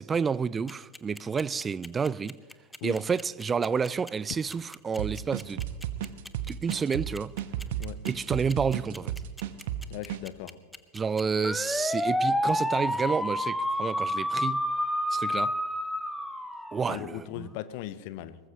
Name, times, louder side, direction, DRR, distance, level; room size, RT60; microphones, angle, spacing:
voice 1, 0.0-2.4 2.8-5.6 6.5-7.3 8.1-9.1 10.9-14.7 15.1-15.5 16.7-17.5, right 5 dB, 15° right, 0.4 m, -30 dB
sound 1, 0.7-17.1, left 1 dB, ahead, 0.8 m, -30 dB
sound 2, 5.0-10.2, right 11 dB, 50° right, 0.9 m, -33 dB
voice 2, 9.9-10.6 11.4-11.5 16.9-18.4, left 14 dB, 45° left, 0.8 m, -38 dB
22.0 x 19.5 x 3.0 m
figure-of-eight pair, 90°, 0 cm